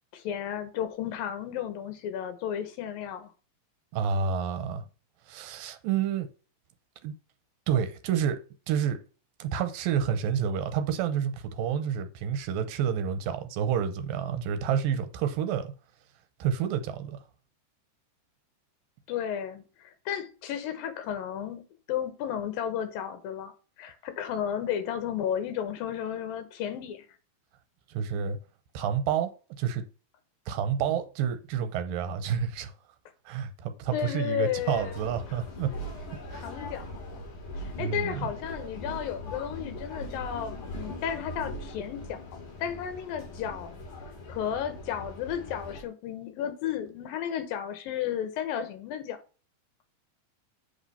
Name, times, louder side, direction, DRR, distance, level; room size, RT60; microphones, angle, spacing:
voice 1, 0.1-3.3 19.1-23.5 23.8-27.1 33.9-35.1 36.3-37.2 37.6-42.2 42.6-43.7 44.3-49.2, left 9 dB, 85° left, 2.9 m, -33 dB
voice 2, 3.9-4.8 5.3-6.3 7.0-7.1 7.7-8.4 8.7-9.0 9.4-15.7 16.4-17.2 27.9-28.4 28.7-29.3 29.6-29.8 30.5-32.7 33.3-35.7 36.3-36.5 37.8-38.2, right 8 dB, 85° right, 2.5 m, -29 dB
sound 1, 34.7-45.8, left 1 dB, 65° left, 3.8 m, -40 dB
8.1 x 3.5 x 5.6 m
omnidirectional pair, 4.1 m